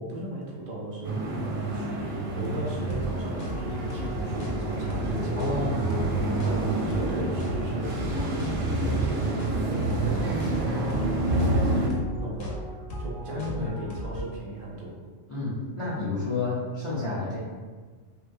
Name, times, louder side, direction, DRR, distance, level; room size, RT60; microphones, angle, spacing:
voice 1, 0.0-6.0 6.4-12.6 13.0-15.0, right 1 dB, 55° right, -4 dB, 0.6 m, -37 dB
sound 1, 1.0-11.9, right 2 dB, 85° right, 1.0 m, -28 dB
sound 2, 2.9-14.3, equal, 90° left, 1.0 m, -36 dB
voice 2, 5.4-5.8 13.3-13.7 15.3-17.4, left 3 dB, 45° left, -9 dB, 0.4 m, -30 dB
2.7 x 2.2 x 2.5 m, 1.5 s
omnidirectional pair, 1.3 m